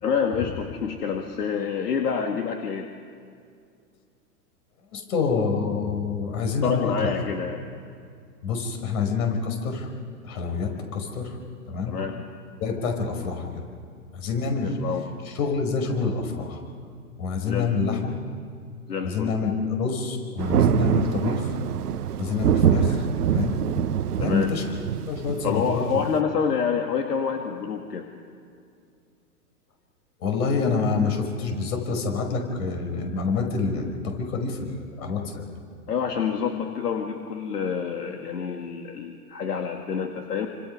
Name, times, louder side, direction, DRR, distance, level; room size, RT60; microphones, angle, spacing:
voice 1, 0.0-2.9 6.6-7.6 11.9-12.2 14.6-15.1 17.4-17.7 18.9-19.3 24.2-24.5 25.4-28.1 35.9-40.5, left 6 dB, 85° left, 4 dB, 2.0 m, -27 dB
voice 2, 4.9-7.1 8.4-9.9 10.2-11.4 11.7-11.9 12.6-13.6 14.1-14.8 15.3-16.6 17.2-18.2 19.0-21.6 22.2-23.1 23.3-23.7 24.2-25.9 30.2-35.4, left 4 dB, 65° left, 3 dB, 5.3 m, -27 dB
Thunder, 20.4-26.2, right 9 dB, 80° right, 1.0 m, -25 dB
27.5 x 26.0 x 5.5 m, 2.3 s
hypercardioid pair, 120°, 46 cm